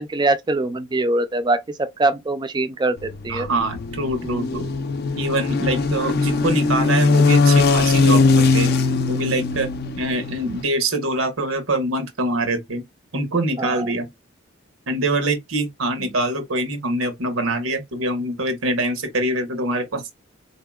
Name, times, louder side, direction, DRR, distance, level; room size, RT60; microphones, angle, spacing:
voice 1, 0.0-3.5 13.6-13.9, right 2 dB, 20° right, 0.4 m, -23 dB
sound 1, 3.0-10.6, left 3 dB, 50° left, 0.4 m, -20 dB
voice 2, 3.3-4.7 5.2-8.7 9.1-9.7 10.0-12.8 13.1-14.1 14.9-20.0, right 2 dB, 85° right, 1.1 m, -24 dB
4.1 x 2.7 x 2.3 m
head